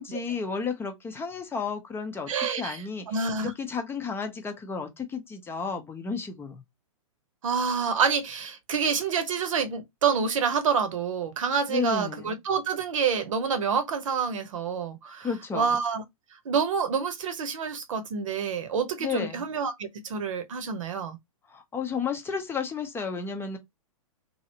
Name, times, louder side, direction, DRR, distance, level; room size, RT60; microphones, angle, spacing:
voice 1, 0.0-6.6 11.7-12.3 15.2-15.8 19.0-19.5 21.5-23.6, left 5 dB, 15° left, 0.6 m, -32 dB
voice 2, 2.3-3.5 7.4-16.0 16.4-21.2, right 6 dB, 65° right, 0.9 m, -28 dB
3.1 x 2.7 x 2.7 m
hypercardioid pair, 120°, 18 cm